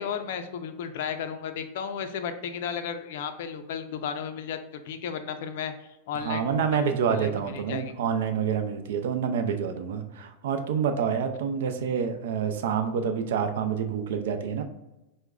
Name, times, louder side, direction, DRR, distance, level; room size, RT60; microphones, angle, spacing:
voice 1, 0.0-7.9, left 7 dB, 65° left, 9 dB, 0.4 m, -34 dB
voice 2, 6.1-14.6, right 7 dB, 75° right, 7 dB, 0.4 m, -27 dB
4.7 x 2.1 x 2.3 m, 0.94 s
supercardioid pair, 150°, 0 cm